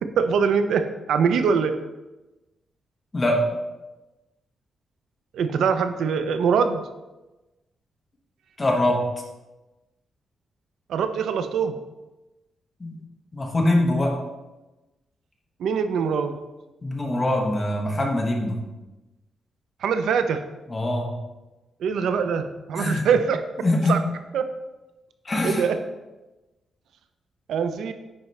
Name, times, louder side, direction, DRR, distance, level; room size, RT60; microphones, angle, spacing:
voice 1, 0.2-1.7 5.3-6.8 10.9-11.7 15.6-16.3 19.8-20.4 21.8-23.4 23.9-24.0 24.3-24.5 25.4-25.8 27.5-27.9, right 6 dB, 85° right, 9 dB, 0.4 m, -23 dB
voice 2, 3.1-3.6 8.6-9.0 12.8-13.0 13.3-14.2 16.8-18.6 20.7-21.1 22.8-23.0 23.6-24.0 25.2-25.7, left 1 dB, 20° left, 0 dB, 1.1 m, -23 dB
9.4 x 4.1 x 3.2 m, 1.1 s
wide cardioid pair, 160°, 0 cm